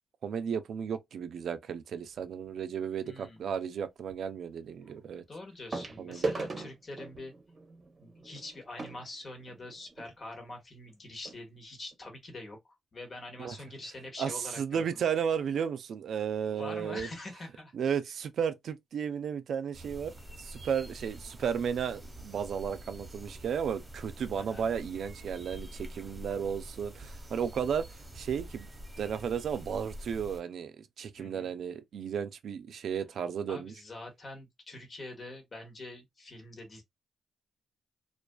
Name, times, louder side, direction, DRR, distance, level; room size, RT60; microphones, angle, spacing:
voice 1, 0.2-5.2 6.0-6.3 13.4-13.6 14.2-17.1 17.7-27.9 28.1-28.7 29.0-33.7, right 7 dB, 70° right, 0.4 m, -34 dB
sound 1, 2.1-2.4 4.1-4.2 5.7-10.1 10.9-11.0 11.2-11.4 11.9-12.0, right 3 dB, 40° right, 0.7 m, -39 dB
voice 2, 3.0-3.4 5.3-7.3 8.0-12.6 12.9-15.0 16.5-17.7 24.4-24.7 31.2-31.5 33.5-36.8, left 2 dB, 40° left, 1.2 m, -44 dB
sound 2, 19.7-30.4, right 1 dB, 15° right, 1.2 m, -46 dB
2.4 x 2.3 x 2.2 m
cardioid pair, 70°, 0 cm